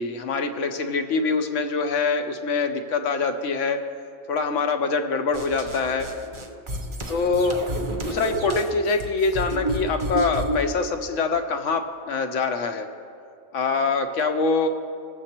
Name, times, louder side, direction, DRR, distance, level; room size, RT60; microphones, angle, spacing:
voice 1, 0.0-3.8 4.3-6.1 7.1-7.6 8.0-12.9 13.5-14.7, left 4 dB, 70° left, 7 dB, 1.0 m, -24 dB
sound 1, 5.3-10.7, right 1 dB, 40° right, 0.4 m, -30 dB
19.0 x 7.1 x 2.9 m, 2.4 s
omnidirectional pair, 1.4 m